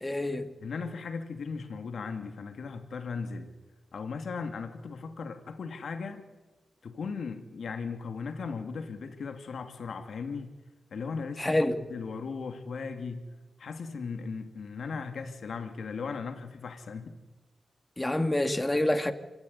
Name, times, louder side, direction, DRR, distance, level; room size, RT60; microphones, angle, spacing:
voice 1, 0.0-0.5 11.4-11.8 18.0-19.1, left 1 dB, 15° left, 2.2 m, -27 dB
voice 2, 0.6-3.5 3.9-6.2 6.8-10.5 10.9-11.6 11.9-13.2 13.6-17.2, left 5 dB, 75° left, 2.5 m, -37 dB
26.0 x 16.5 x 10.0 m
cardioid pair, 70°, 0 cm